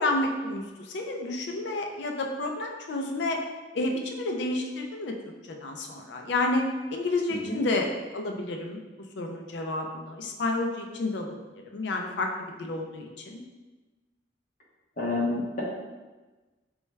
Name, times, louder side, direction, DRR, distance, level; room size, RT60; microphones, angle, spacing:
voice 1, 0.0-3.4 3.7-5.1 5.5-6.6 6.9-8.8 9.2-11.4 11.7-12.3 12.6-13.4, left 2 dB, 70° left, 2 dB, 0.4 m, -30 dB
voice 2, 15.0-15.6, left 2 dB, 45° left, -5 dB, 0.9 m, -29 dB
4.2 x 2.3 x 3.2 m, 1.2 s
head